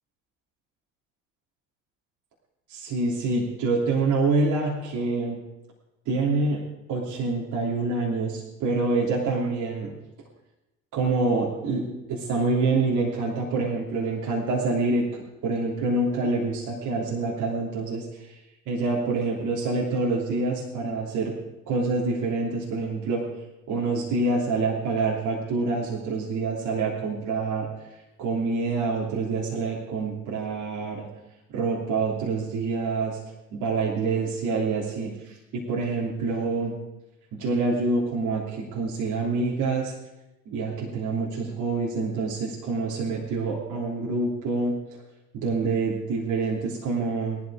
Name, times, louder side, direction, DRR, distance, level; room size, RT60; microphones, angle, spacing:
voice 1, 2.7-5.4 6.1-6.6 6.9-9.9 10.9-11.8 12.1-18.4 18.7-21.3 21.7-23.2 23.7-27.7 28.2-31.0 31.5-33.2 33.5-36.7 37.3-39.9 40.5-44.7 45.3-47.4, right 3 dB, 60° right, -4 dB, 3.2 m, -26 dB
18.0 x 12.0 x 4.9 m, 0.97 s
hypercardioid pair, 55°, 35 cm